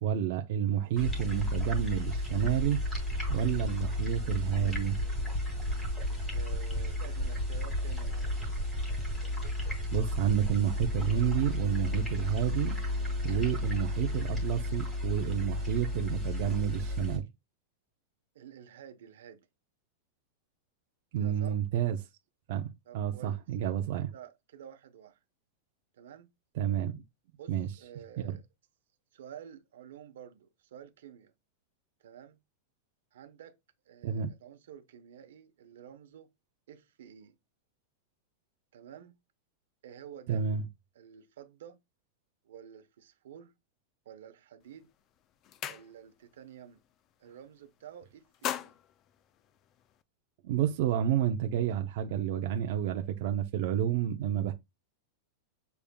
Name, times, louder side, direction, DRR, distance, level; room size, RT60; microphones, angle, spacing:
voice 1, 0.0-2.8 3.3-5.0 9.9-12.8 13.2-17.3 21.1-22.0 22.5-24.1 26.5-27.0 27.5-27.7 28.2-28.4 34.0-34.3 40.3-40.6 50.4-54.5, right 10 dB, 50° right, 0.6 m, -30 dB
sound 1, 1.0-17.2, left 1 dB, 10° left, 2.3 m, -32 dB
voice 2, 6.3-8.5 18.3-19.5 21.2-21.6 22.9-23.4 24.1-25.2 25.9-26.3 27.4-28.4 29.1-31.3 32.0-32.4 33.1-33.6 33.9-36.3 36.7-37.4 38.7-39.1 39.8-40.4 40.9-41.8 42.4-43.5 44.0-44.9 45.7-46.8 47.2-48.8, right 9 dB, 80° right, 1.0 m, -50 dB
sound 2, 44.6-44.8 45.2-46.3 46.7-46.9 47.2-47.8 48.1-50.0, left 10 dB, 25° left, 0.3 m, -40 dB
6.9 x 3.4 x 2.2 m
supercardioid pair, 170°, 0 cm